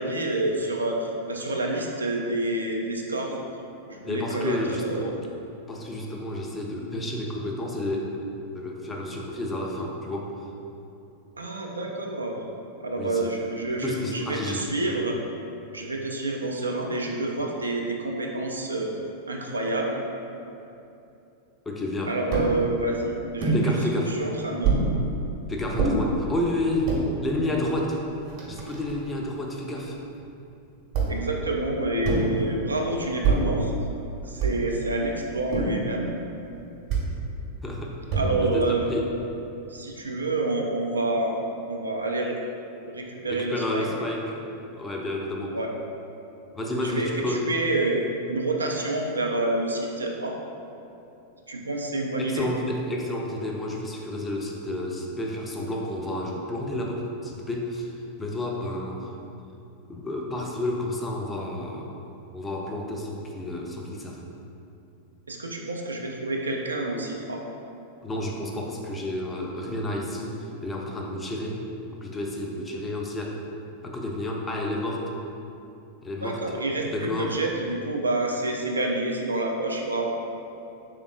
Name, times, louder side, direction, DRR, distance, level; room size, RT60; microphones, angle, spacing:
voice 1, 0.0-3.3 3.9-5.1 11.4-12.4 12.8-15.2 15.7-18.9 19.3-20.0 22.1-23.8 24.1-24.8 31.1-33.7 34.3-36.1 38.1-38.9 39.7-42.4 42.8-43.8 45.5-45.7 46.8-50.4 51.5-52.5 65.3-67.4 76.2-80.1, right 2 dB, 75° right, 0 dB, 0.3 m, -28 dB
voice 2, 4.0-5.2 5.7-8.2 8.5-10.5 13.0-13.3 13.8-14.7 21.7-22.2 23.5-24.2 25.5-27.0 27.2-28.0 28.5-30.0 37.6-38.0 38.4-39.1 43.3-44.4 44.7-45.6 46.5-47.4 52.2-57.9 58.2-59.1 59.9-61.9 62.3-64.2 68.0-71.6 72.0-73.4 73.8-75.1 76.0-76.4 76.9-77.4, left 1 dB, 15° left, -1 dB, 0.4 m, -30 dB
sound 1, 22.3-22.5 23.4-23.6 24.6-24.9 25.8-26.0 26.7-27.0 27.8-27.9 28.1-29.1 30.9-31.3 32.0-32.4 33.2-33.6 34.4-34.7 35.5-35.9 36.9-37.1 38.1-38.5, right 4 dB, 40° right, 0.8 m, -25 dB
3.6 x 3.3 x 2.4 m, 2.8 s
figure-of-eight pair, 90°, 0 cm